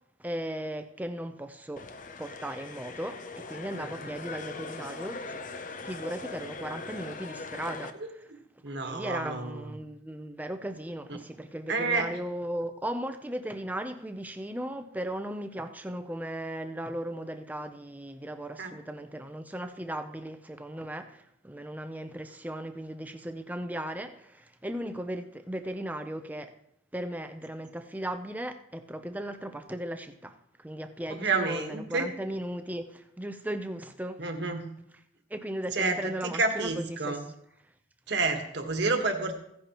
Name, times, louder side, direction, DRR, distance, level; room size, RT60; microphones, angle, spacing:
voice 1, 0.2-1.9 2.2-5.4 5.7-8.2 8.9-26.6 26.9-34.3 35.3-37.2, right 1 dB, 10° right, 0.5 m, -37 dB
sound 1, 1.8-7.9, left 3 dB, 40° left, 0.6 m, -41 dB
voice 2, 8.6-9.7 11.1-11.2 11.7-12.1 18.6-18.7 31.1-32.0 34.2-34.7 35.7-37.2 38.1-39.4, right 3 dB, 55° right, 1.4 m, -29 dB
15.5 x 10.0 x 3.0 m
head